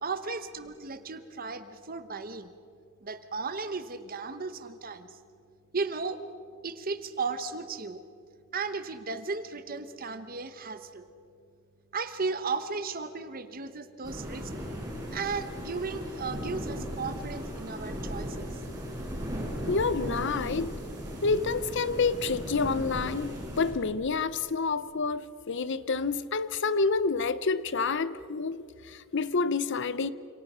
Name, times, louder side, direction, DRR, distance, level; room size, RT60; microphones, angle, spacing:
voice 1, 0.0-2.5 3.0-5.1 5.7-6.2 6.6-8.0 8.5-11.1 11.9-14.5 15.1-18.5, right 4 dB, 45° right, 1.1 m, -35 dB
sound 1, 14.0-23.7, equal, 20° right, 7.4 m, -37 dB
voice 2, 19.7-20.7 21.2-30.1, left 4 dB, 60° left, 0.7 m, -28 dB
29.5 x 27.0 x 5.6 m
head